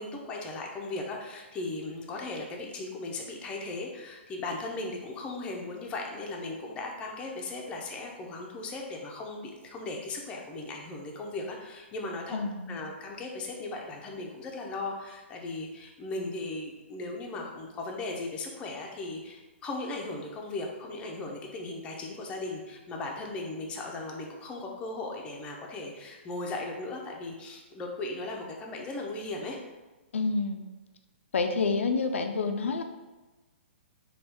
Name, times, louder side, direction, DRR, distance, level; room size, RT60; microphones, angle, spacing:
voice 1, 0.0-12.4 12.7-29.6, left 2 dB, 15° left, 0 dB, 0.5 m, -37 dB
voice 2, 12.3-12.8 30.1-30.7 31.3-32.8, left 4 dB, 90° left, 6 dB, 0.4 m, -28 dB
4.3 x 2.3 x 3.4 m, 1.1 s
hypercardioid pair, 150°, 7 cm